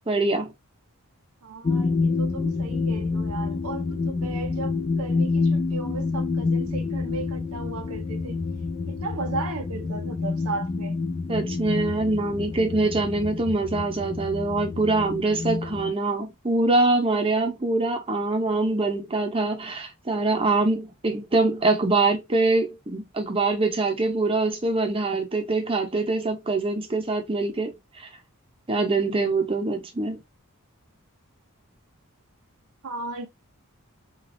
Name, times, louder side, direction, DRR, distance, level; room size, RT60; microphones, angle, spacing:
voice 1, 0.1-0.5 11.3-28.1 28.7-30.2, right 2 dB, 25° right, 0.7 m, -24 dB
voice 2, 1.4-8.5 8.9-11.0 32.8-33.3, right 3 dB, 80° right, 0.6 m, -35 dB
sound 1, 1.6-15.9, left 4 dB, 25° left, 0.3 m, -28 dB
3.3 x 2.4 x 2.5 m
head